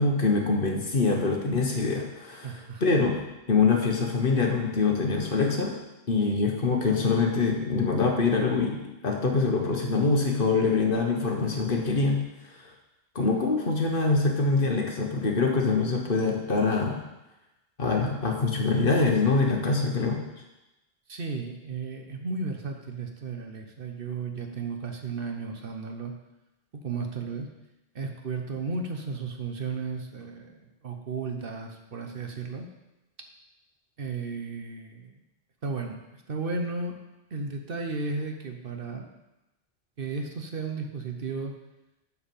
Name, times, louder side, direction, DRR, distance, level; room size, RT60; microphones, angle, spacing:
voice 1, 0.0-2.5 2.8-3.2 3.5-5.8 6.1-12.2 12.6-12.7 13.1-17.0 17.8-20.2, left 4 dB, 50° left, 1 dB, 1.5 m, -24 dB
voice 2, 2.4-3.0 21.1-26.1 26.7-27.5 27.9-32.7 34.0-35.2 35.6-37.0 37.3-39.1 40.0-41.5, right 4 dB, 55° right, 4 dB, 1.1 m, -34 dB
8.9 x 4.7 x 7.1 m, 0.97 s
omnidirectional pair, 1.1 m